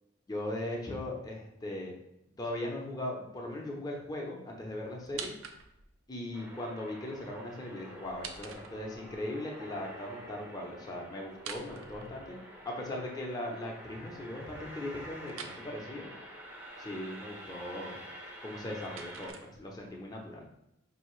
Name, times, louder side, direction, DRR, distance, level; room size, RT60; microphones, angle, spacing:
voice 1, 0.3-1.9 2.4-5.3 6.1-12.4 12.6-16.1 16.8-18.0 18.4-20.5, left 1 dB, 20° left, -1 dB, 0.7 m, -39 dB
sound 1, 5.0-6.0 8.0-9.2 11.3-12.6 15.3-15.6 18.3-20.0, right 6 dB, 85° right, 0.5 m, -46 dB
sound 2, 6.3-19.3, equal, 10° right, 0.7 m, -48 dB
5.0 x 2.7 x 3.1 m, 0.81 s
head